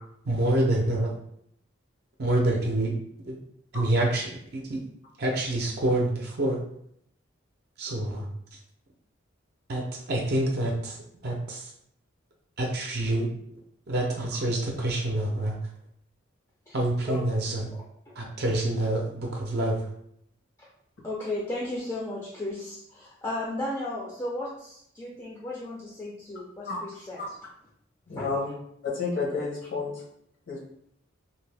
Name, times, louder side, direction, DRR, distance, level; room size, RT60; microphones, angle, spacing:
voice 1, 0.3-1.1 2.2-3.0 3.3-3.4 3.7-4.8 5.2-6.6 7.8-8.3 9.7-11.0 11.2-11.7 12.6-13.3 13.9-15.6 16.7-17.7 18.2-19.9, right 1 dB, 50° right, -1 dB, 0.5 m, -27 dB
voice 2, 17.7-18.2 20.6-20.7 21.0-27.2 28.1-28.3, left 1 dB, 15° left, -4 dB, 0.4 m, -35 dB
voice 3, 28.1-28.5 28.8-30.0 30.5-30.6, left 4 dB, 70° left, -4 dB, 1.0 m, -30 dB
2.7 x 2.6 x 3.3 m, 0.71 s
head